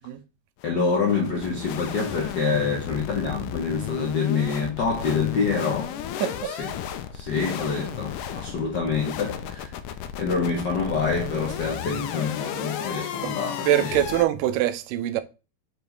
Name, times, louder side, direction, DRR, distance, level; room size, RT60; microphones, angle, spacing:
sound 1, 0.6-14.3, left 9 dB, 90° left, 2.3 m, -34 dB
voice 1, 0.6-6.7 7.1-9.7 10.2-14.0, left 5 dB, 65° left, 1.0 m, -26 dB
voice 2, 6.2-6.5 13.2-13.3 13.7-15.2, right 12 dB, 90° right, 2.3 m, -23 dB
7.1 x 4.9 x 3.9 m
omnidirectional pair, 3.7 m